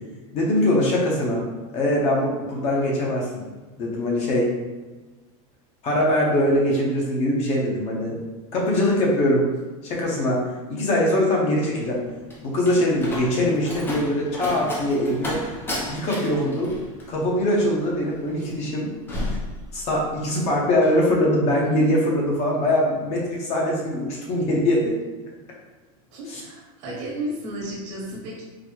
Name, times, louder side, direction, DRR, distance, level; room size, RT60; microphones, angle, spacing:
voice 1, 0.3-1.5 1.7-3.4 3.8-4.5 5.8-8.2 8.5-9.4 9.8-10.4 10.7-12.0 12.4-15.4 15.9-16.7 17.1-18.9 19.7-25.0 26.3-26.4, left 1 dB, 35° left, -2 dB, 0.8 m, -22 dB
Slam, 11.8-20.2 20.5-21.0, left 1 dB, 10° left, 0.5 m, -33 dB
voice 2, 26.1-28.4, right 1 dB, 55° right, -3 dB, 1.2 m, -33 dB
3.9 x 2.0 x 2.9 m, 1.2 s
supercardioid pair, 150°, 18 cm